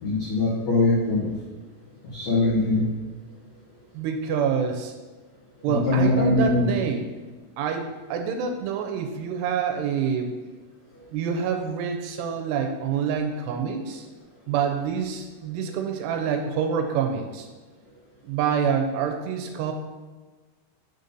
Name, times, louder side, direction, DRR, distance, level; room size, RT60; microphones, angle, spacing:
voice 1, 0.0-1.3 2.1-2.9 5.7-6.6, left 2 dB, 70° left, -8 dB, 1.6 m, -22 dB
voice 2, 3.9-4.9 5.6-7.1 7.6-10.3 11.1-14.1 14.5-17.5 18.2-19.7, right 7 dB, 85° right, 5 dB, 2.6 m, -27 dB
6.5 x 4.0 x 5.2 m, 1.3 s
omnidirectional pair, 5.0 m